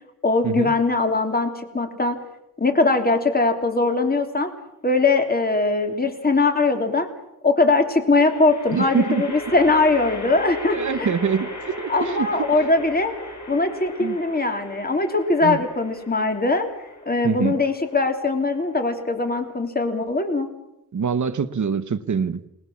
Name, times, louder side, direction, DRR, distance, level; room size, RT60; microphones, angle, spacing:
voice 1, 0.2-2.2 2.6-4.5 4.8-7.1 7.4-11.1 11.9-13.1 13.5-16.7 17.0-20.5, left 3 dB, 25° left, 5 dB, 3.2 m, -21 dB
sound 1, 5.1-5.6 8.2-19.5, left 2 dB, 50° left, 6.4 m, -38 dB
voice 2, 8.7-9.2 10.5-12.3 14.0-14.2 15.4-15.6 17.2-17.6 20.9-22.4, right 6 dB, 50° right, 10 dB, 1.2 m, -24 dB
29.5 x 20.0 x 7.3 m, 0.85 s
wide cardioid pair, 175°, 37 cm